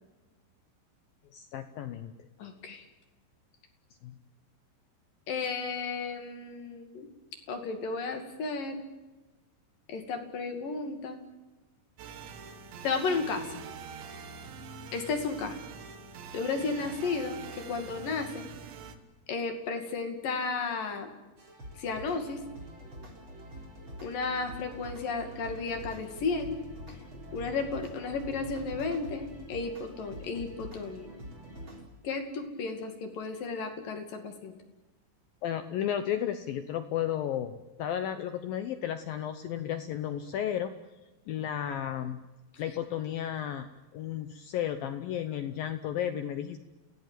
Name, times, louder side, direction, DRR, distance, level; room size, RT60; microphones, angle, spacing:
voice 1, 1.3-2.1 4.0-4.1 35.4-40.7 41.3-42.2 42.6-43.7 43.9-46.6, left 10 dB, 75° left, 9 dB, 2.2 m, -33 dB
voice 2, 2.4-2.8 5.3-7.1 7.5-8.8 9.9-11.2 12.8-13.6 14.9-15.6 16.3-18.5 19.3-21.1 21.8-22.4 24.0-26.6 27.3-31.1 32.0-34.5, left 4 dB, 55° left, 5 dB, 3.7 m, -33 dB
sound 1, 12.0-19.0, right 6 dB, 75° right, 3.8 m, -44 dB
sound 2, 21.4-31.8, equal, 30° right, 4.3 m, -45 dB
28.5 x 17.5 x 9.1 m, 1.1 s
omnidirectional pair, 5.2 m